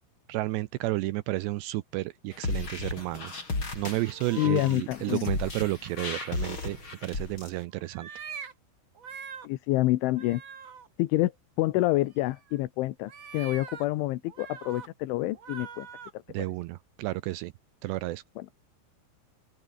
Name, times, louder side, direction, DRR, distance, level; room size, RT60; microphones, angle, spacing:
voice 1, 0.3-3.3 3.8-8.1 16.3-17.5 17.8-18.2, right 18 dB, 80° right, 2.6 m, -32 dB
sound 1, 2.3-7.5, left 3 dB, 25° left, 6.3 m, -34 dB
sound 2, 4.0-4.8 6.4-6.9 7.8-8.5 8.9-9.5 10.1-10.9 12.3-12.6 13.0-13.9 14.2-14.9 15.3-16.1, right 6 dB, 50° right, 1.4 m, -43 dB
voice 2, 4.4-5.3 9.4-10.4 11.0-11.3 11.6-15.9 18.4-18.5, left 17 dB, 80° left, 3.4 m, -27 dB
open air
omnidirectional pair, 5.5 m